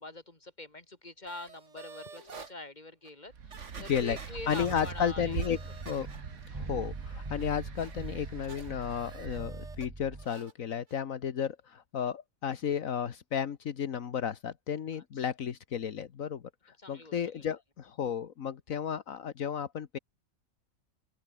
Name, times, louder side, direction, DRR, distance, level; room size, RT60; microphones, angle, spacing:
voice 1, 0.0-5.4 6.1-6.2 14.9-15.0 16.8-17.5, left 2 dB, 30° left, 3.5 m, -45 dB
sound 1, 1.3-2.5 3.1-3.2 3.5-6.5 6.8-9.9 10.2-10.5 10.9-11.0, right 5 dB, 60° right, 2.2 m, -50 dB
sound 2, 3.3-9.4, right 6 dB, 90° right, 2.1 m, -42 dB
voice 2, 4.5-5.6 5.9-6.1 6.5-20.0, left 8 dB, 75° left, 1.6 m, -33 dB
sound 3, 4.6-10.3, right 2 dB, 20° right, 1.3 m, -43 dB
open air
omnidirectional pair, 1.4 m